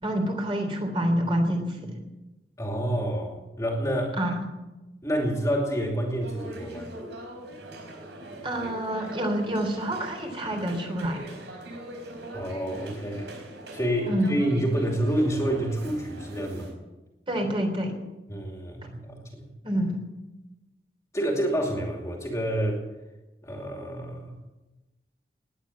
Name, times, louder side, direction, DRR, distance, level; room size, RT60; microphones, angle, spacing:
voice 1, 0.0-2.0 4.2-4.4 8.4-11.2 14.1-14.4 17.3-17.9 19.6-20.0, right 1 dB, 30° right, 3 dB, 3.4 m, -27 dB
voice 2, 2.6-4.2 5.0-6.9 12.3-13.3 13.7-16.7 18.3-19.5 21.1-22.9 23.4-24.3, right 1 dB, 15° left, 0 dB, 2.7 m, -28 dB
sound 1, 6.2-16.7, right 1 dB, 80° right, 4.6 m, -41 dB
19.5 x 10.0 x 7.4 m, 1.1 s
head